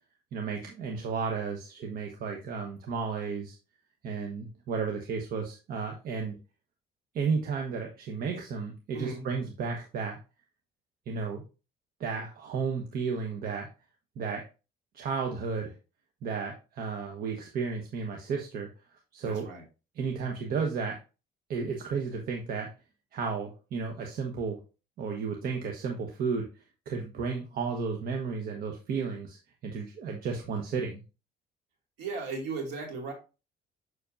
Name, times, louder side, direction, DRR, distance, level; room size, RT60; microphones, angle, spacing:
voice 1, 0.3-3.6 4.0-6.4 7.1-10.2 11.1-11.4 12.0-13.7 14.2-14.4 14.9-15.7 16.2-18.7 19.1-19.5 20.0-21.0 21.5-22.7 23.1-24.6 25.0-26.5 26.9-29.4 29.6-31.0, right 5 dB, 60° right, 2 dB, 1.2 m, -33 dB
voice 2, 19.2-19.6 32.0-33.1, right 4 dB, 85° right, 1 dB, 2.6 m, -36 dB
7.2 x 6.4 x 2.6 m, 0.31 s
cardioid pair, 110°, 17 cm